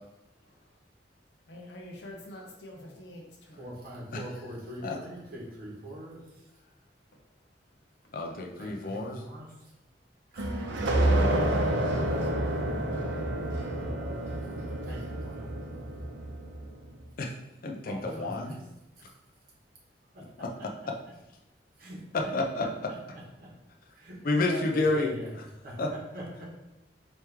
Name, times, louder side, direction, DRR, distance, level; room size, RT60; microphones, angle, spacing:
voice 1, 1.5-3.7, left 1 dB, 75° left, 0 dB, 0.9 m, -46 dB
voice 2, 3.6-6.5 8.6-9.7 10.3-10.5 14.8-15.7 17.8-18.6 19.0-19.1 20.1-20.7 21.8-22.3 22.6-23.5 23.9-25.3 25.6-26.5, equal, 55° right, -4 dB, 1.3 m, -42 dB
voice 3, 8.1-9.2 10.8-11.4 17.2-17.3 17.6-18.6 20.4-20.7 22.1-22.9 24.2-25.1 25.8-25.9, left 2 dB, 50° left, 2 dB, 0.5 m, -30 dB
sound 1, 10.4-16.7, right 1 dB, 90° right, 0.6 m, -29 dB
4.3 x 3.0 x 3.5 m, 0.93 s
head